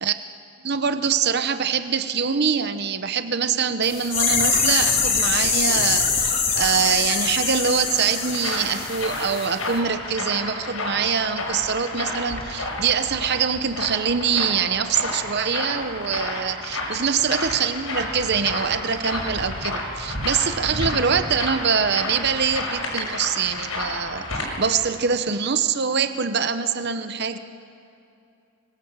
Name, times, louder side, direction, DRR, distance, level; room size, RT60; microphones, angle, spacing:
voice 1, 0.6-27.4, right 6 dB, 50° right, 10 dB, 0.8 m, -24 dB
sound 1, 3.8-9.5 9.7-9.8, left 5 dB, 40° left, 3.5 m, -23 dB
sound 2, 7.7-24.5, left 2 dB, 75° left, 6.5 m, -31 dB
25.5 x 21.5 x 7.4 m, 2.6 s
head